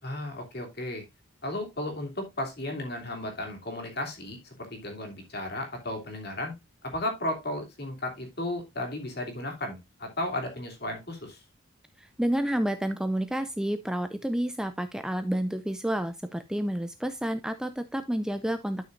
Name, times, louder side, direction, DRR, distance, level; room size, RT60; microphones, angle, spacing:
voice 1, 0.0-1.1 1.4-6.5 6.8-11.4, left 1 dB, 50° left, 2.8 m, -34 dB
voice 2, 12.0-18.9, right 1 dB, 5° right, 0.4 m, -30 dB
11.5 x 6.1 x 2.5 m
head